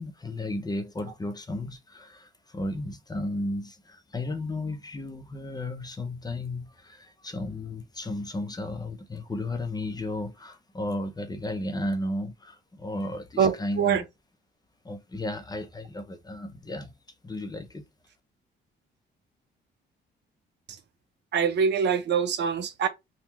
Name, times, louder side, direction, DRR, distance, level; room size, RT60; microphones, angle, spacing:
voice 1, 0.0-14.1 14.8-16.9 17.2-17.8, left 1 dB, 20° left, 0.7 m, -34 dB
voice 2, 13.4-14.0 21.3-22.9, right 7 dB, 60° right, 0.7 m, -24 dB
3.5 x 2.3 x 2.9 m
cardioid pair, 90°, 20 cm